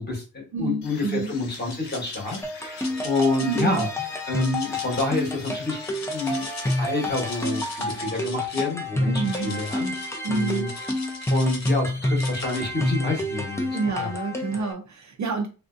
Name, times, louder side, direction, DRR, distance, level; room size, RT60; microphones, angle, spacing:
voice 1, 0.0-3.9 4.3-6.5 6.8-9.9 10.3-10.7 11.3-14.1, left 2 dB, 25° left, -1 dB, 1.1 m, -28 dB
voice 2, 0.5-1.3 3.4-3.8 9.1-9.6 10.2-10.6 13.7-15.5, right 4 dB, 45° right, 3 dB, 0.5 m, -28 dB
sound 1, 0.8-8.3, left 5 dB, 70° left, 0.8 m, -46 dB
sound 2, 1.2-2.4 2.8-3.8 4.3-6.8 7.0-8.7 9.2-11.8 12.2-12.6, left 3 dB, 40° left, 0.8 m, -39 dB
sound 3, 2.4-14.7, left 1 dB, 5° left, 0.4 m, -28 dB
3.3 x 2.6 x 2.5 m, 0.33 s
wide cardioid pair, 150°, 42 cm